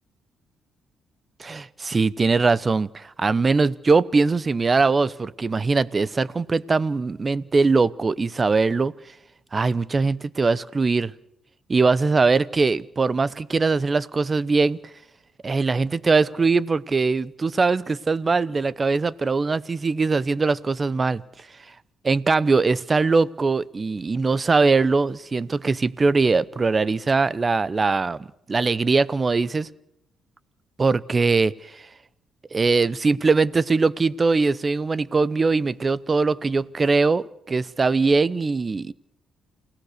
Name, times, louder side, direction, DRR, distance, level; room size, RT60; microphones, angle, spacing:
voice 1, 1.4-8.9 9.5-11.1 11.7-14.8 15.4-21.2 22.0-29.7 30.8-31.8 32.5-38.9, right 4 dB, 30° right, 20 dB, 0.8 m, -21 dB
28.5 x 16.5 x 6.6 m, 0.78 s
cardioid pair, 90°, 0 cm